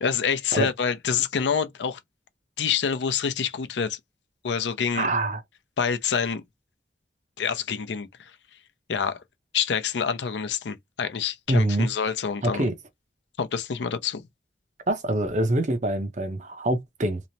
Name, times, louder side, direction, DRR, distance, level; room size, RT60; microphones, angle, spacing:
voice 1, 0.0-2.0 2.6-4.0 4.4-5.1 5.8-6.4 7.4-8.3 8.9-9.2 9.5-12.6 13.4-14.3, left 6 dB, 80° left, 0.5 m, -27 dB
voice 2, 4.9-5.4 11.5-11.9 12.4-12.7 14.9-17.2, right 1 dB, 40° right, 0.6 m, -25 dB
3.0 x 2.0 x 2.6 m
head